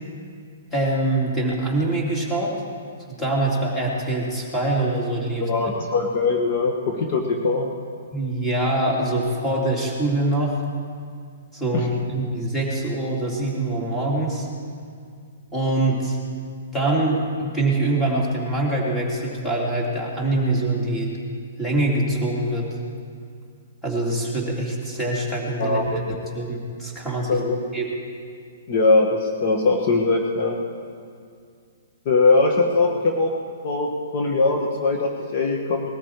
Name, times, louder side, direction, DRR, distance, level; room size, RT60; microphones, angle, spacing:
voice 1, 0.7-2.5 3.2-5.5 8.1-10.6 11.5-14.5 15.5-16.2 16.7-21.1 21.6-22.7 23.8-26.0 26.3-27.4 27.7-27.8, right 2 dB, 10° left, -4 dB, 3.3 m, -24 dB
voice 2, 5.4-7.7 11.7-11.9 25.6-26.0 27.3-27.6 28.7-30.5 32.0-33.3 33.6-35.9, left 3 dB, 45° left, 1 dB, 1.7 m, -21 dB
20.5 x 13.5 x 4.8 m, 2.2 s
hypercardioid pair, 150°, 0 cm